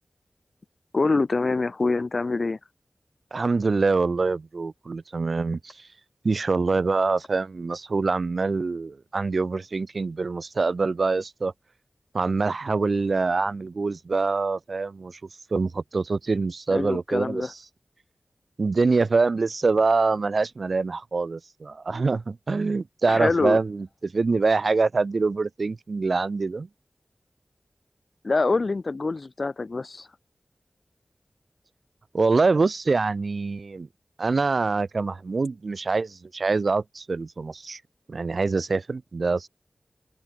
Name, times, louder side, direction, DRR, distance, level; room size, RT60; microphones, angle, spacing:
voice 1, 0.9-2.6 16.7-17.5 23.1-23.6 28.2-30.1, left 3 dB, 60° left, 0.3 m, -25 dB
voice 2, 3.3-5.9 6.2-11.5 12.1-15.2 15.5-17.6 18.6-26.7 32.1-33.9 34.2-37.8 38.1-39.5, right 4 dB, 70° right, 0.3 m, -25 dB
open air
wide cardioid pair, 75°, 0 cm